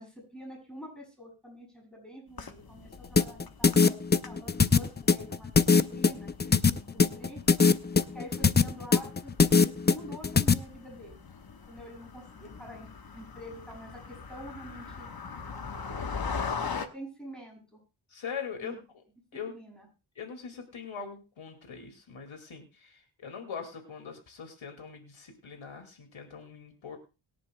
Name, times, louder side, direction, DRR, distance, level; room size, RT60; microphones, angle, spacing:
voice 1, 0.0-5.6 5.9-7.4 8.1-11.3 11.7-15.1 16.6-17.8 18.6-18.8 19.5-19.9, equal, ahead, -1 dB, 7.1 m, -46 dB
sound 1, 2.3-16.9, left 5 dB, 45° left, 1.2 m, -41 dB
sound 2, 3.2-10.5, left 5 dB, 20° left, 0.5 m, -21 dB
voice 2, 18.1-18.7 19.3-19.6 20.2-27.0, left 6 dB, 70° left, 5 dB, 2.3 m, -41 dB
22.0 x 10.5 x 2.2 m, 0.30 s
wide cardioid pair, 80°, 49 cm